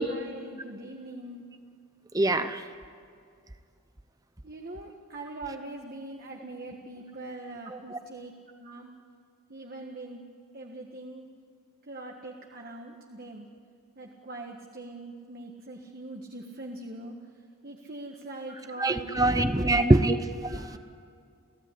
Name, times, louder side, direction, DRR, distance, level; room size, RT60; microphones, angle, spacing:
voice 1, 0.0-1.4 4.4-8.9 9.5-10.3 10.5-11.3 11.9-13.5 14.0-17.2 17.6-19.8 20.4-20.8, right 2 dB, 45° right, 1 dB, 1.7 m, -42 dB
voice 2, 2.1-2.6 7.7-8.0 18.8-20.8, right 1 dB, 15° right, 9 dB, 0.7 m, -24 dB
30.0 x 16.0 x 9.9 m, 2.3 s
head